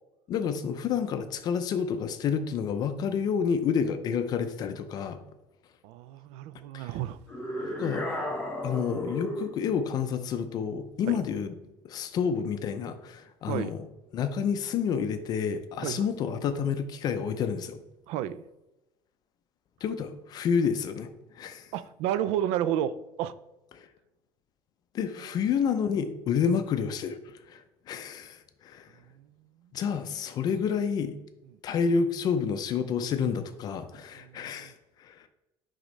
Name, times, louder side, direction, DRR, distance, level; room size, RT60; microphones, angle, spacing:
voice 1, 0.3-5.2 6.7-6.9 7.8-8.1 8.6-11.5 11.8-13.9 14.1-17.8 19.8-21.7 23.7-23.9 24.9-27.2 27.5-28.9 29.7-31.2 31.6-35.3, left 6 dB, 40° left, 9 dB, 0.4 m, -29 dB
voice 2, 5.8-7.2 7.5-7.8 11.1-11.2 13.5-13.8 15.8-16.1 18.1-18.4 21.7-23.3 25.2-25.3 29.2-29.3 34.1-34.7, right 11 dB, 70° right, 15 dB, 0.4 m, -32 dB
sound 1, 7.3-9.6, left 1 dB, 10° left, 1.3 m, -33 dB
10.0 x 3.7 x 3.2 m, 0.97 s
cardioid pair, 170°, 11 cm